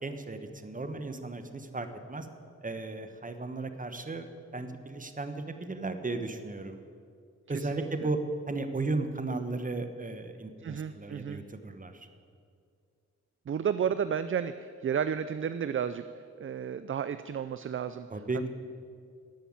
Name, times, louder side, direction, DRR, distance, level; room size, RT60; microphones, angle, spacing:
voice 1, 0.0-2.3 2.6-4.3 4.5-6.8 7.5-8.2 8.5-12.1 18.1-18.4, right 3 dB, 25° right, 8 dB, 1.1 m, -35 dB
voice 2, 7.5-8.1 10.6-11.4 13.5-16.0 16.4-18.1 18.3-18.5, right 8 dB, 45° right, 12 dB, 0.4 m, -32 dB
13.0 x 5.6 x 8.8 m, 2.3 s
cardioid pair, 60°, 30 cm